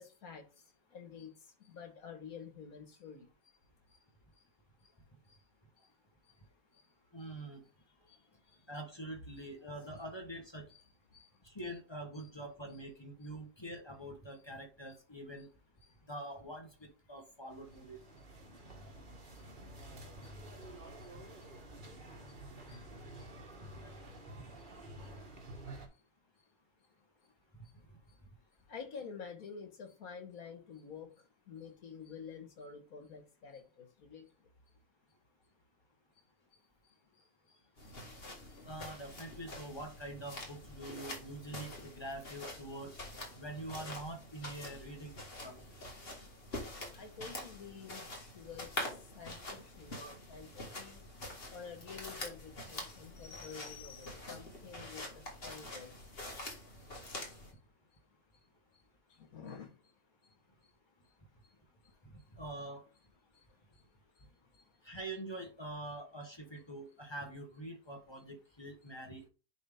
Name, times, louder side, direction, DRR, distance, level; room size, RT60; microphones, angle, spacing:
voice 1, 0.0-3.3 3.9-4.0 4.4-4.5 4.8-4.9 5.3-5.4 5.8-5.9 6.2-6.4 6.7-6.8 7.2-7.3 8.0-8.7 10.7-10.8 11.1-11.4 12.2-12.3 15.4-15.5 15.8-16.0 18.1-18.3 18.7-18.8 19.3-21.1 21.4-21.5 22.7-22.8 23.2-23.3 24.1-24.2 24.5-24.7 25.0-25.1 25.4-25.5 26.4-26.5 27.2-27.3 27.6-27.7 28.1-28.2 28.7-34.5 36.5-37.7 38.2-38.6 46.9-51.0 51.4-56.1 56.7-56.9 57.5-57.6 57.9-58.4 58.7-58.8 59.1-59.9 60.2-60.7 61.4-61.5 61.8-62.2 63.3-64.7, left 6 dB, 75° left, 1.8 m, -51 dB
voice 2, 7.1-7.6 8.7-10.7 11.4-15.5 16.1-18.0 24.4-24.5 38.6-43.0 43.4-45.1 45.4-45.6 49.9-50.2 62.3-62.8 64.8-69.3, right 1 dB, 20° left, 1.0 m, -45 dB
sound 1, 17.5-25.9, right 1 dB, 35° right, 1.6 m, -50 dB
sound 2, 37.8-57.5, left 1 dB, 40° left, 2.0 m, -46 dB
10.0 x 3.5 x 3.5 m
omnidirectional pair, 1.5 m